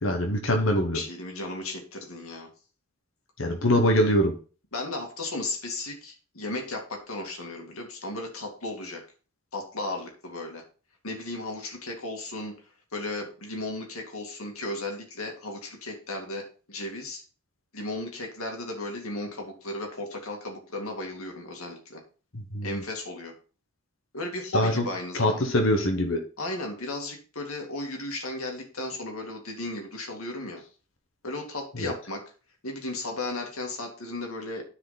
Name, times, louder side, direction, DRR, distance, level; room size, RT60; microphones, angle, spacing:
voice 1, 0.0-1.0 3.4-4.3 22.3-22.8 24.5-24.8 25.1-26.2 31.7-31.9, left 1 dB, 65° left, 3 dB, 1.2 m, -23 dB
voice 2, 0.9-2.5 4.7-9.0 9.5-10.6 11.0-12.5 12.9-17.2 17.7-22.0 22.6-23.3 24.1-25.6 26.4-30.6 31.2-32.2 32.6-34.6, left 2 dB, 80° left, 2 dB, 2.3 m, -35 dB
9.9 x 4.9 x 4.1 m, 0.37 s
head